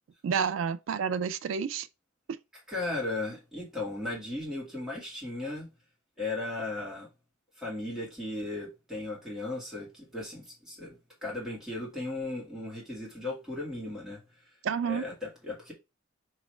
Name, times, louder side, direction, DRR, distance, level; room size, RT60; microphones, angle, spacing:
voice 1, 0.2-1.9 2.3-2.4 14.6-15.0, right 6 dB, 85° right, 0.3 m, -29 dB
voice 2, 2.7-5.7 6.2-7.1 7.6-14.2 14.8-15.7, left 2 dB, 5° right, 1.8 m, -36 dB
3.2 x 3.1 x 4.2 m
head